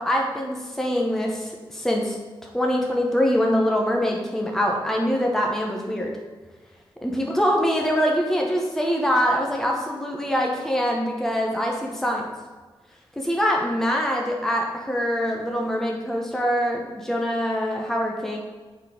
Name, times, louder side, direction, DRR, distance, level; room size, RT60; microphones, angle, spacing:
voice 1, 0.0-6.1 7.0-12.3 13.2-18.4, equal, 5° left, -1 dB, 0.9 m, -24 dB
7.1 x 4.2 x 5.0 m, 1.3 s
wide cardioid pair, 135°, 9 cm